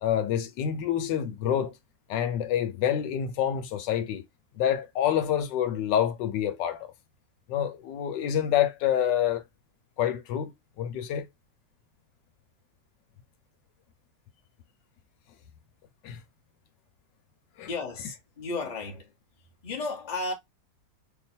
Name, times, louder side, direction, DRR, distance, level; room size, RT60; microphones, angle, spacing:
voice 1, 0.0-1.7 2.1-4.2 4.5-6.9 7.5-9.4 10.0-10.5 10.8-11.3 16.0-16.2 17.6-17.7, left 10 dB, 90° left, 1.4 m, -27 dB
voice 2, 17.7-19.1 19.6-20.3, left 3 dB, 30° left, 0.8 m, -33 dB
3.1 x 2.2 x 4.1 m
omnidirectional pair, 1.9 m